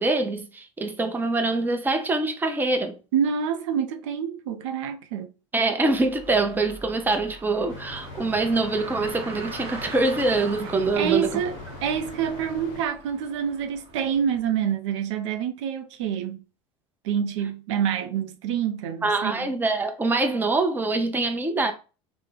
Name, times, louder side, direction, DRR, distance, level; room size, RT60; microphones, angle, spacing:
voice 1, 0.0-3.0 5.5-11.4 19.0-21.7, right 2 dB, 10° right, 0.5 m, -24 dB
voice 2, 3.1-5.3 10.9-16.4 17.0-19.5, right 8 dB, 70° right, 0.5 m, -27 dB
Car, 5.9-14.4, right 3 dB, 35° right, 0.9 m, -42 dB
sound 1, 7.7-12.9, left 3 dB, 55° left, 0.6 m, -41 dB
3.2 x 2.0 x 3.3 m
hypercardioid pair, 85°, 16 cm